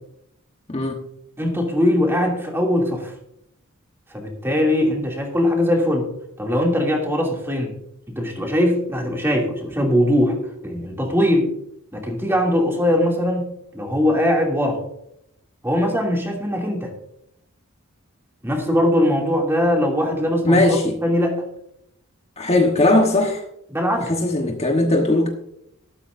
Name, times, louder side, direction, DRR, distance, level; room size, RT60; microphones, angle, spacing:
voice 1, 1.4-3.1 4.1-6.1 6.4-7.7 8.1-10.4 10.6-11.5 11.9-14.8 15.6-16.9 18.4-21.4 23.7-24.1, left 1 dB, 10° right, 0 dB, 2.6 m, -21 dB
voice 2, 20.4-21.0 22.4-23.4 24.1-25.3, left 2 dB, 30° left, 2 dB, 1.2 m, -18 dB
13.5 x 12.5 x 2.6 m, 0.76 s
head